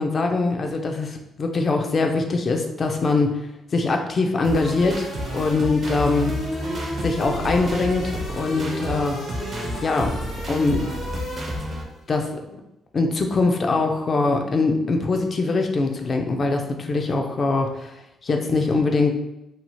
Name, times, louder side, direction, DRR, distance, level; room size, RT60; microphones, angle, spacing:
voice 1, 0.0-3.3 3.7-6.3 7.0-9.2 9.8-10.2 10.5-10.8 12.1-12.3 12.9-17.9 18.2-19.2, left 3 dB, 45° left, 3 dB, 0.4 m, -22 dB
sound 1, 4.4-11.8, right 1 dB, 45° right, 0.5 m, -31 dB
sound 2, 4.5-12.0, left 2 dB, 70° left, 1.0 m, -35 dB
2.8 x 2.0 x 2.9 m, 0.89 s
cardioid pair, 90°, 0 cm